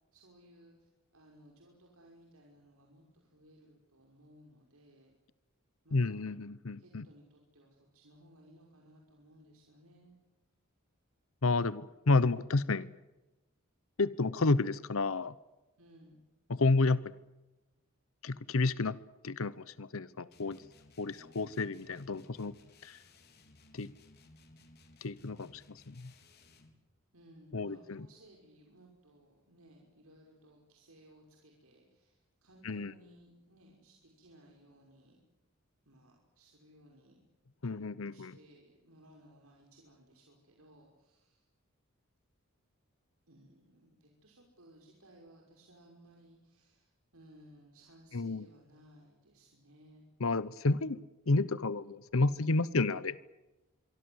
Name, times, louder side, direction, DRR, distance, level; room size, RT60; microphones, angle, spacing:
voice 1, 0.1-5.1 5.8-6.2 6.8-10.2 15.8-16.2 27.1-35.2 35.9-37.2 38.0-41.4 43.3-50.0, right 1 dB, 85° right, 0 dB, 5.8 m, -60 dB
voice 2, 5.9-7.0 11.4-12.9 14.0-15.3 16.5-17.1 18.2-19.0 19.2-20.6 21.0-22.6 22.8-23.0 23.7-23.9 25.0-26.1 27.5-28.0 32.6-32.9 37.6-38.3 48.1-48.4 50.2-51.0 51.3-53.1, left 3 dB, 75° left, 17 dB, 0.9 m, -30 dB
sound 1, 20.3-26.8, left 2 dB, 50° left, 4.1 m, -60 dB
26.5 x 24.0 x 8.0 m, 1.1 s
head